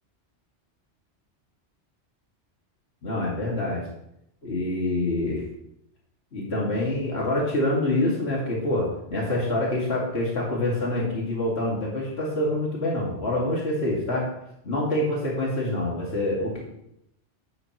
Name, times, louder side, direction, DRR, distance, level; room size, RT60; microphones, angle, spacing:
voice 1, 3.0-3.8 4.4-5.4 6.3-14.3 14.6-16.6, left 1 dB, 60° left, -4 dB, 2.4 m, -26 dB
11.5 x 9.4 x 3.0 m, 0.80 s
omnidirectional pair, 1.2 m